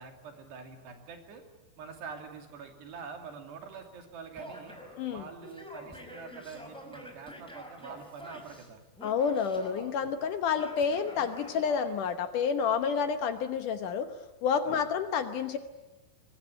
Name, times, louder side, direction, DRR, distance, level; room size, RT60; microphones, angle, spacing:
voice 1, 0.0-1.4 1.8-4.8 5.1-8.8 14.6-14.8, right 5 dB, 65° right, 5 dB, 4.8 m, -45 dB
Male speech man speaking / Yell, 4.4-5.0 5.4-8.7 9.0-9.9 10.6-11.9, equal, ahead, 4.8 m, -46 dB
voice 2, 9.0-14.1 14.4-15.6, left 6 dB, 75° left, 9 dB, 1.9 m, -29 dB
25.0 x 21.0 x 10.0 m, 1.1 s
omnidirectional pair, 5.3 m